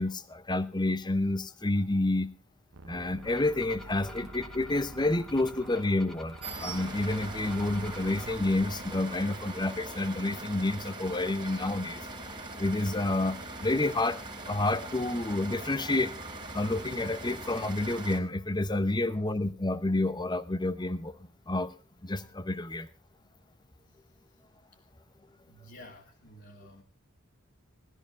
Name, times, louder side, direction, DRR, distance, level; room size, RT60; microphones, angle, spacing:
voice 1, 0.0-2.3 2.9-12.0 12.6-14.2 14.5-16.1 16.5-21.2 21.5-21.7 22.0-22.9, left 2 dB, 20° left, 13 dB, 0.9 m, -29 dB
sound 1, 2.7-9.0, right 2 dB, 75° right, 0.9 m, -48 dB
sound 2, 3.2-8.4, left 1 dB, ahead, 1.6 m, -49 dB
sound 3, 6.4-18.2, right 2 dB, 25° right, 2.7 m, -41 dB
voice 2, 25.4-26.8, left 1 dB, 50° left, -2 dB, 2.3 m, -51 dB
17.5 x 13.0 x 4.0 m, 0.32 s
head